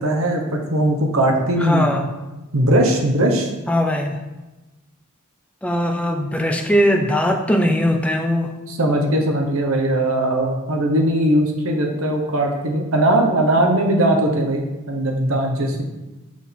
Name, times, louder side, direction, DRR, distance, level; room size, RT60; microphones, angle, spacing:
voice 1, 0.0-1.9 2.5-3.5 8.7-15.8, right 1 dB, 65° right, 2 dB, 0.9 m, -19 dB
voice 2, 1.6-2.1 3.7-4.2 5.6-8.5, equal, 5° left, 3 dB, 0.5 m, -20 dB
6.1 x 4.4 x 3.7 m, 1.1 s
head